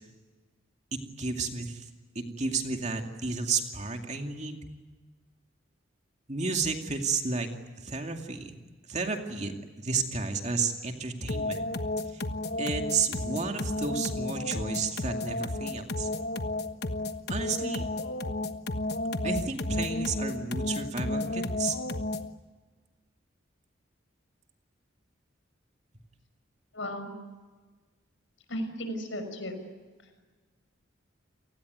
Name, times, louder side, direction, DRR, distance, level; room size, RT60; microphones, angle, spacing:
voice 1, 0.9-1.9 2.1-4.6 6.3-7.5 7.8-8.6 8.9-9.5 9.8-11.6 12.1-12.2 12.6-16.1 17.3-17.8 19.2-21.8, right 4 dB, 35° right, 4 dB, 2.4 m, -32 dB
sound 1, 11.3-22.4, left 2 dB, 55° left, 1.3 m, -32 dB
voice 2, 26.7-27.1 28.5-29.6, equal, 75° left, 7 dB, 6.1 m, -35 dB
29.5 x 19.5 x 9.4 m, 1.3 s
head